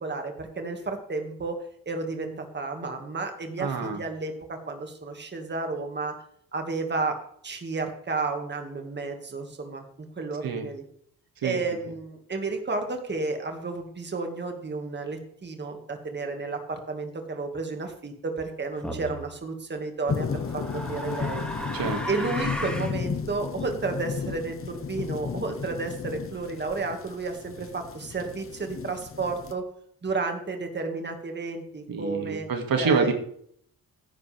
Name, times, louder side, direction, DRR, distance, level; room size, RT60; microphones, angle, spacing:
voice 1, 0.0-6.1 6.5-7.2 7.4-9.8 10.2-10.8 11.4-21.4 22.1-29.6 30.0-32.5 32.8-33.1, right 3 dB, 30° right, 4 dB, 2.1 m, -32 dB
voice 2, 3.6-4.0 10.4-10.7 11.4-11.6 21.7-22.0 31.9-33.1, right 5 dB, 70° right, 5 dB, 2.4 m, -26 dB
sound 1, 18.8-19.2 20.2-23.0, equal, 5° left, 2.3 m, -35 dB
sound 2, 20.1-29.5, left 5 dB, 35° left, 1.1 m, -34 dB
16.0 x 10.5 x 3.5 m, 0.65 s
cardioid pair, 125°, 36 cm